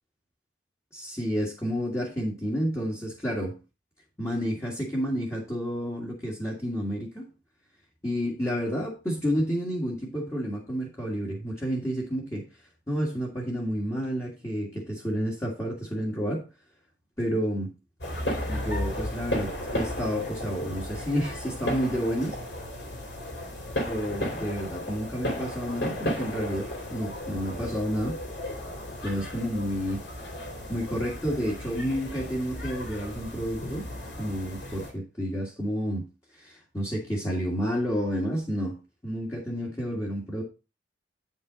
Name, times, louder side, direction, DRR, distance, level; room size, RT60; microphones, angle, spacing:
voice 1, 0.9-3.6 4.2-7.3 8.0-12.5 12.9-16.5 17.2-17.7 18.5-22.4 23.8-28.2 29.0-30.0 30.7-33.9 34.2-36.0 36.4-40.4, equal, 15° left, -4 dB, 1.8 m, -30 dB
sound 1, 18.0-34.9, left 1 dB, 65° left, 3.0 m, -34 dB
8.6 x 5.5 x 3.9 m, 0.28 s
head